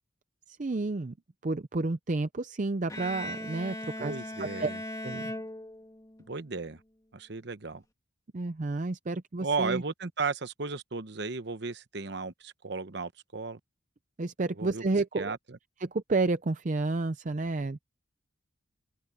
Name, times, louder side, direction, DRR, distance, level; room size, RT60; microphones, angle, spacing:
voice 1, 0.6-1.1 1.4-4.1 4.4-4.7 5.0-5.3 8.3-9.8 14.2-15.3 15.8-17.8, right 3 dB, 40° right, 0.5 m, -30 dB
Bowed string instrument, 2.9-6.2, left 1 dB, 15° left, 2.5 m, -38 dB
voice 2, 4.0-4.8 6.3-6.8 7.1-7.8 9.4-13.6 14.6-14.8 15.2-15.6, right 4 dB, 55° right, 0.9 m, -35 dB
open air
head